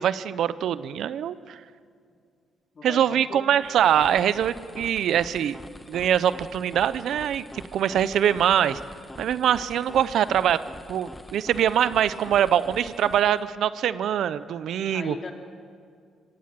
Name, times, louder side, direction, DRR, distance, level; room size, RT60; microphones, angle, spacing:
voice 1, 0.0-1.6 2.8-5.6 5.9-8.8 9.2-10.6 10.9-15.1, right 9 dB, 70° right, 15 dB, 0.7 m, -23 dB
voice 2, 2.7-3.5 14.5-15.3, left 4 dB, 40° left, 3 dB, 2.9 m, -39 dB
sound 1, 3.6-13.5, left 1 dB, 10° left, 1.3 m, -45 dB
25.5 x 17.5 x 7.6 m, 2.2 s
cardioid pair, 90°, 0 cm